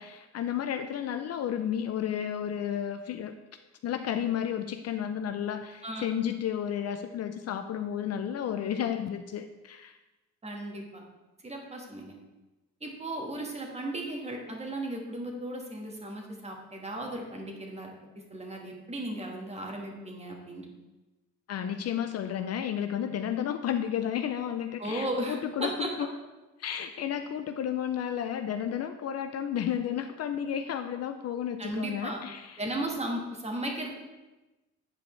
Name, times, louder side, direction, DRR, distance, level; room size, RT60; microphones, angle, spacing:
voice 1, 0.0-3.3 3.8-10.0 21.5-26.1 26.6-32.6, left 9 dB, 55° left, 8 dB, 0.5 m, -32 dB
voice 2, 10.4-11.0 11.4-12.2 12.8-17.9 18.3-20.6 24.8-25.9 31.6-32.2 32.6-33.9, right 1 dB, 20° right, 1 dB, 1.5 m, -35 dB
8.7 x 5.0 x 3.2 m, 1.1 s
cardioid pair, 90°, 30 cm